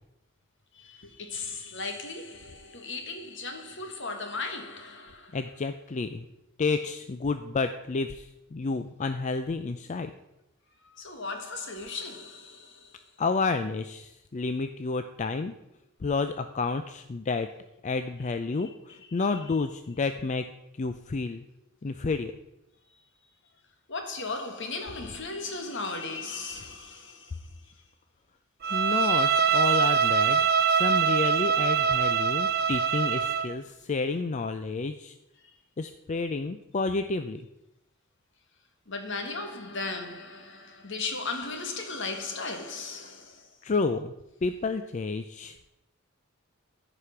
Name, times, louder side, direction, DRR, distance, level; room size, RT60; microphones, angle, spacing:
voice 1, 0.7-5.4 9.9-10.0 10.8-13.0 18.6-18.7 19.1-19.6 23.9-27.4 38.9-43.5, left 3 dB, 65° left, 1.7 m, -37 dB
voice 2, 5.3-6.3 6.6-10.1 13.2-15.5 16.0-17.5 17.8-20.4 20.8-21.4 21.8-22.3 28.7-30.4 30.7-35.1 35.8-37.5 43.6-44.1 44.4-45.5, left 4 dB, 35° left, 0.4 m, -30 dB
Bowed string instrument, 28.6-33.5, right 7 dB, 50° right, 0.7 m, -24 dB
14.5 x 5.0 x 5.8 m
head